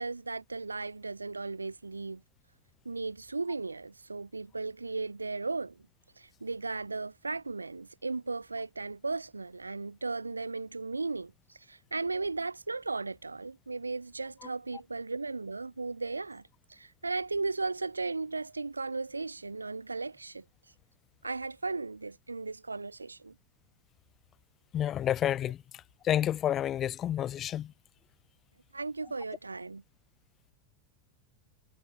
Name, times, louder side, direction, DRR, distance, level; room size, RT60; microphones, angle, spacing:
voice 1, 0.0-2.2 2.9-5.9 6.2-16.4 16.7-20.4 21.2-23.4 28.7-29.8, right 3 dB, 80° right, 0.3 m, -36 dB
voice 2, 24.7-25.6 26.0-27.7, left 11 dB, 30° left, 0.4 m, -29 dB
figure-of-eight pair, 90°, 0 cm